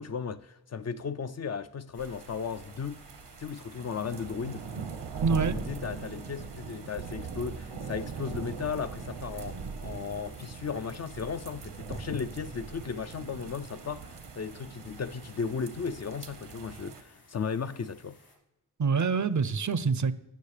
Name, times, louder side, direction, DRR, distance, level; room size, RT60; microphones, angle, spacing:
voice 1, 0.0-3.1 3.4-4.7 5.5-18.2, left 6 dB, 40° left, 0.4 m, -35 dB
sound 1, 1.9-18.4, left 2 dB, 65° left, 3.0 m, -60 dB
sound 2, 2.0-17.0, right 5 dB, 75° right, 0.9 m, -41 dB
voice 2, 5.2-5.6 18.8-20.1, right 5 dB, 45° right, 0.6 m, -26 dB
16.5 x 6.4 x 3.3 m
cardioid pair, 50°, 42 cm